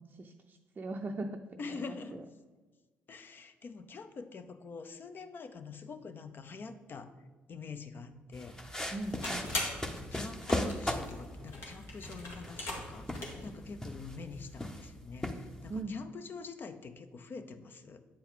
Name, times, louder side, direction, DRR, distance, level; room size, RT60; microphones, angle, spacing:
voice 1, 0.0-2.2 8.9-9.5 15.7-16.0, right 2 dB, 35° right, 3 dB, 0.5 m, -40 dB
voice 2, 1.6-2.2 3.1-7.1 7.5-8.9 9.9-18.0, left 4 dB, 50° left, 9 dB, 0.7 m, -45 dB
sound 1, 8.3-15.8, left 1 dB, 10° left, 0.8 m, -39 dB
sound 2, 8.9-13.5, left 2 dB, 70° left, 2.0 m, -41 dB
8.5 x 4.4 x 3.8 m, 1.3 s
supercardioid pair, 60°, 5 cm